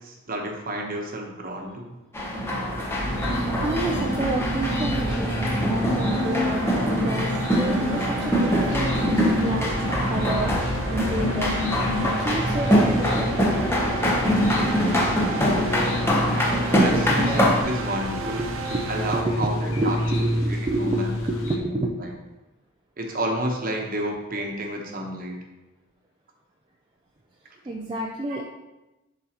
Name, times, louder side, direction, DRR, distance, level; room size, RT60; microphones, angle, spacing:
voice 1, 0.0-2.0 9.9-10.0 13.3-13.4 16.3-18.5 18.9-20.0 20.4-21.1 21.5-22.1 23.0-25.4 28.3-28.4, right 1 dB, 40° right, 1 dB, 1.0 m, -31 dB
sound 1, 2.1-17.6, equal, 10° left, 0.8 m, -24 dB
sound 2, 2.2-19.2, right 3 dB, 70° right, 0.6 m, -34 dB
sound 3, 3.0-21.6, equal, 75° left, 1.0 m, -29 dB
voice 2, 3.3-10.5 10.9-11.5 12.0-13.8 18.0-22.0 27.6-28.5, right 2 dB, 25° right, -1 dB, 0.4 m, -30 dB
11.0 x 3.8 x 2.9 m, 1.0 s
head